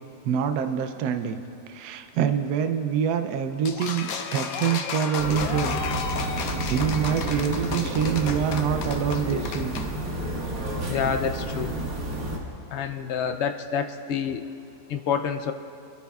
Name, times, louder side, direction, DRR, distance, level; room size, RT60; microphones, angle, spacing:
voice 1, 0.2-1.4 1.7-5.8 6.3-9.9, right 8 dB, 75° right, 7 dB, 1.2 m, -26 dB
sound 1, 3.6-9.9, left 6 dB, 65° left, 1.1 m, -32 dB
sound 2, 5.2-12.4, right 1 dB, 60° right, 2.1 m, -30 dB
voice 2, 10.9-11.8 12.7-14.4 14.9-15.5, left 7 dB, 85° left, 6 dB, 0.6 m, -28 dB
25.5 x 12.5 x 2.4 m, 2.6 s
omnidirectional pair, 1.8 m